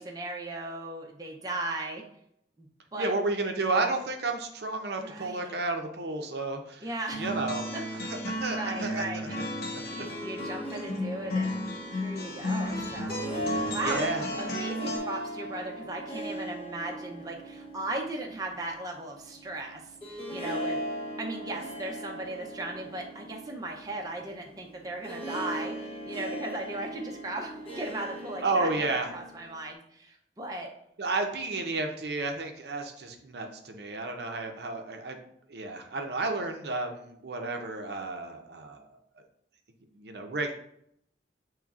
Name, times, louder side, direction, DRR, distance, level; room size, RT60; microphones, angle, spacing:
voice 1, 0.0-2.0 2.6-2.7 2.9-3.1 5.0-5.6 6.8-7.3 7.7-7.8 8.5-9.4 9.7-13.2 13.7-14.0 14.4-19.8 20.1-20.8 21.2-30.7, right 2 dB, 20° right, 0 dB, 0.6 m, -37 dB
voice 2, 3.0-6.9 7.2-7.7 8.0-9.3 9.6-10.1 13.8-14.2 28.4-29.1 31.0-35.2 35.5-38.9 39.9-40.5, right 3 dB, 65° right, 4 dB, 0.6 m, -32 dB
sound 1, 7.1-15.0, left 1 dB, 60° left, 0.7 m, -34 dB
Harp, 9.8-29.7, equal, 30° left, 0.9 m, -39 dB
7.1 x 3.1 x 2.4 m, 0.72 s
head